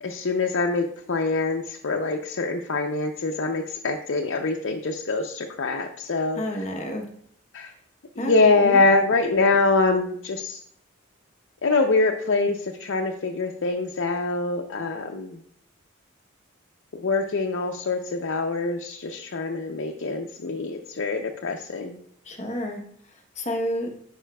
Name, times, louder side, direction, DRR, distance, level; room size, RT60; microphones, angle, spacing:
voice 1, 0.0-6.7 7.5-7.7 8.2-10.6 11.6-15.4 16.9-22.0, left 3 dB, 70° left, 2 dB, 0.6 m, -24 dB
voice 2, 6.4-7.0 8.2-8.8 22.3-22.8 23.4-23.9, equal, 35° left, 2 dB, 0.9 m, -29 dB
11.0 x 5.0 x 2.3 m, 0.64 s
head